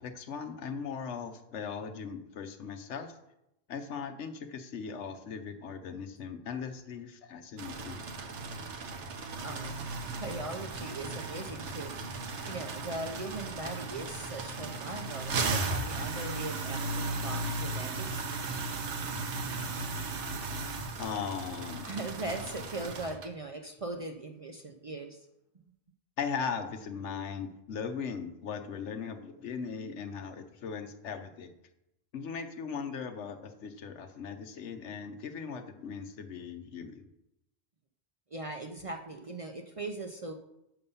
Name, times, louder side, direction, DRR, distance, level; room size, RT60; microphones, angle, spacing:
voice 1, 0.0-3.1 3.7-8.0 21.0-21.9 26.2-31.6 32.1-37.1, left 6 dB, 80° left, 7 dB, 1.1 m, -38 dB
sound 1, 7.6-23.3, right 3 dB, 80° right, 1.2 m, -36 dB
voice 2, 9.4-9.9 10.2-11.9 12.4-18.3 19.1-19.2 21.8-25.3 38.3-40.3, right 2 dB, 40° right, 3 dB, 0.5 m, -40 dB
6.8 x 5.9 x 5.5 m, 0.85 s
omnidirectional pair, 1.2 m